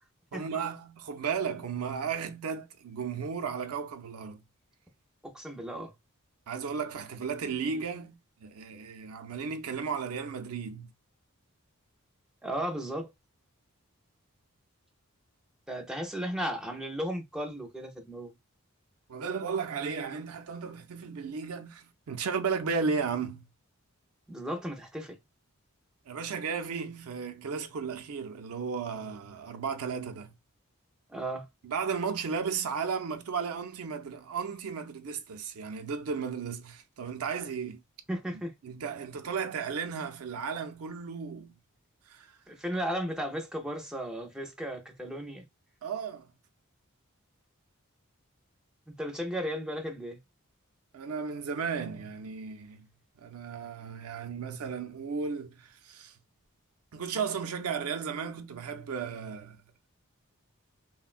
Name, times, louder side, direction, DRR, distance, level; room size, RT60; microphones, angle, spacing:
voice 1, 0.3-4.4 6.5-10.9 19.1-23.4 26.1-30.3 31.6-37.8 38.6-41.5 42.1-42.4 45.8-46.3 50.9-52.9 53.2-56.1 56.9-59.6, right 5 dB, 85° right, 0.5 m, -34 dB
voice 2, 5.2-5.9 12.4-13.1 15.7-18.3 24.3-25.2 31.1-31.5 38.1-38.5 42.5-45.5 48.9-50.2, equal, 5° right, 0.5 m, -35 dB
3.5 x 2.2 x 2.4 m
head